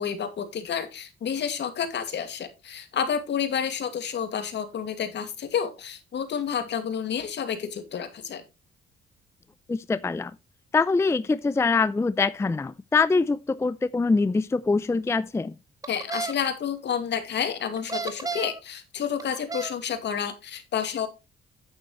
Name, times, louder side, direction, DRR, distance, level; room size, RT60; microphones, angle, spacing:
voice 1, 0.0-8.4 15.9-21.1, left 8 dB, 60° left, 2.2 m, -30 dB
voice 2, 9.7-10.3 10.7-15.5, left 4 dB, 15° left, 0.4 m, -24 dB
sound 1, 15.8-16.3 17.8-18.6 19.2-19.7, right 4 dB, 15° right, 1.4 m, -32 dB
9.2 x 8.9 x 3.1 m
cardioid pair, 90°, 20 cm